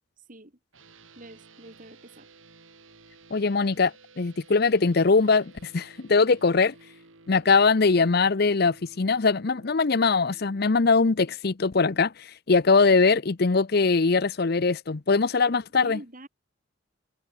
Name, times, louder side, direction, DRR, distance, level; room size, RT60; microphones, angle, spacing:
sound 1, 0.7-10.7, right 3 dB, 85° right, 5.2 m, -54 dB
voice 1, 1.2-2.3 15.8-16.3, right 1 dB, 40° right, 2.9 m, -45 dB
voice 2, 3.3-6.7 7.3-16.0, left 4 dB, 50° left, 0.7 m, -22 dB
head